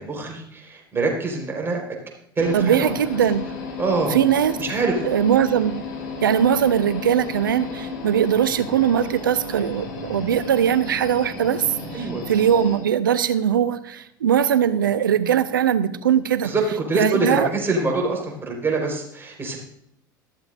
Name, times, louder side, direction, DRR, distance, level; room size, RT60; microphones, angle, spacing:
voice 1, 0.0-1.8 2.4-2.9 3.8-4.2 4.6-4.9 11.9-12.2 16.4-16.6 16.9-19.6, right 3 dB, 20° right, 0 dB, 4.4 m, -24 dB
sound 1, 2.4-12.8, left 3 dB, 65° left, 4.5 m, -34 dB
voice 2, 2.5-3.4 4.1-4.6 5.0-5.8 6.2-16.5 16.9-17.5, right 9 dB, 75° right, 14 dB, 0.8 m, -20 dB
13.5 x 13.5 x 2.6 m, 0.77 s
figure-of-eight pair, 75°, 11 cm